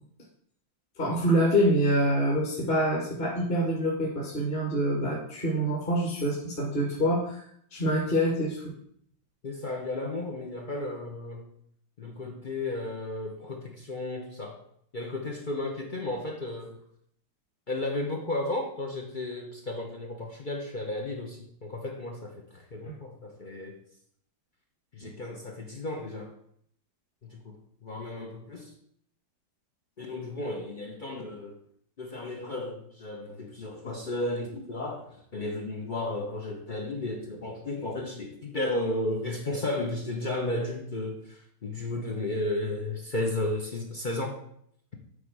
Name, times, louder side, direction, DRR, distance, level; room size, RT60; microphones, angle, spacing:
voice 1, 1.0-7.4 7.7-8.6 22.8-22.9, equal, 25° left, -3 dB, 1.8 m, -26 dB
voice 2, 9.4-11.5 12.0-14.6 14.9-16.8 17.7-23.8 24.9-26.3 27.2-28.7 30.0-31.6 32.0-44.4, left 2 dB, 80° left, 0 dB, 0.4 m, -34 dB
9.7 x 3.7 x 6.0 m, 0.68 s
omnidirectional pair, 2.3 m